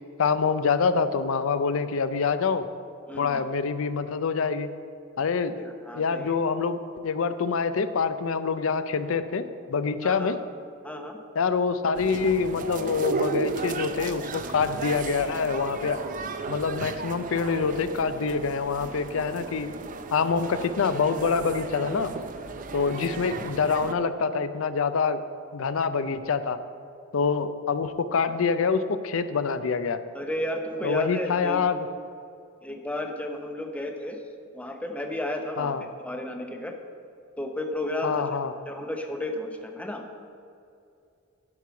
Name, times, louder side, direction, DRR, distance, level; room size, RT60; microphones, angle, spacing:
voice 1, 0.2-2.7 3.1-4.7 5.2-5.6 5.9-10.4 11.4-16.1 16.5-19.7 20.1-22.1 22.7-25.2 25.5-26.6 27.1-30.0 30.8-31.9 35.6-35.8 38.0-38.5, left 5 dB, 70° left, 12 dB, 0.5 m, -26 dB
voice 2, 3.1-3.4 5.6-6.3 10.0-10.4 10.8-11.2 30.1-31.7 32.6-34.3 34.5-35.7 36.0-36.7 37.4-38.2 38.7-40.0, left 1 dB, 5° left, 3 dB, 0.7 m, -33 dB
sound 1, 11.9-23.9, right 4 dB, 40° right, 0.4 m, -35 dB
10.5 x 4.7 x 5.7 m, 2.5 s
head